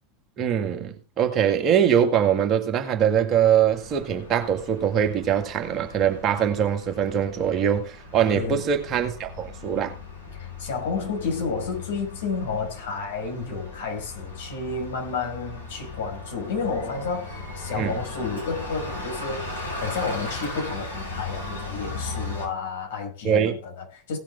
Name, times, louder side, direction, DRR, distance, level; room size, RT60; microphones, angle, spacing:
voice 1, 0.4-10.0 17.8-17.9 23.2-23.6, right 8 dB, 35° right, 2.0 m, -22 dB
Bus, 3.6-22.5, left 3 dB, 85° left, 5.4 m, -37 dB
voice 2, 8.3-8.7 10.3-24.2, left 4 dB, 60° left, 5.5 m, -31 dB
17.5 x 7.4 x 3.7 m
figure-of-eight pair, 80°, 0 cm